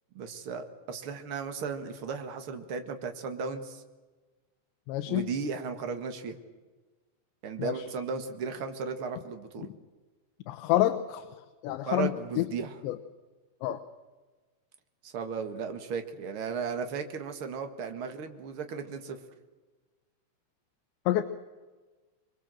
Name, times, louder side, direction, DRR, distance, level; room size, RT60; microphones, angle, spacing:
voice 1, 0.1-3.8 5.1-6.3 7.4-9.7 11.9-12.8 15.0-19.2, right 5 dB, 65° right, 6 dB, 1.3 m, -35 dB
voice 2, 4.9-5.3 7.6-7.8 10.5-11.3 11.6-12.1 12.4-12.5 12.8-13.0 13.6-13.8 21.1-21.2, left 14 dB, 80° left, 7 dB, 3.2 m, -27 dB
24.5 x 23.5 x 7.6 m, 1.3 s
omnidirectional pair, 5.1 m